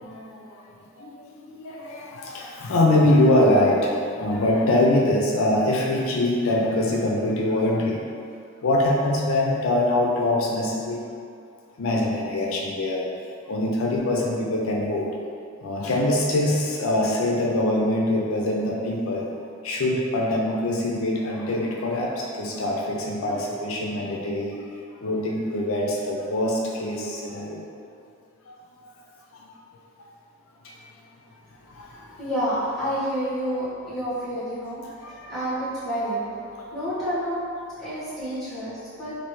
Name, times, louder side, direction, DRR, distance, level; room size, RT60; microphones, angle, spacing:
voice 1, 0.0-0.6 1.0-8.0 8.6-11.0 11.8-13.0 13.5-15.1 15.6-19.3 19.6-24.5 25.0-27.6 28.5-28.6 29.3-29.5 30.6-30.8 31.7-32.2 35.0-35.3, left 1 dB, 80° left, -2 dB, 0.4 m, -23 dB
voice 2, 32.2-34.8 35.3-36.2 36.7-37.4 37.8-39.2, equal, ahead, -15 dB, 1.3 m, -28 dB
3.2 x 2.5 x 3.0 m, 2.3 s
head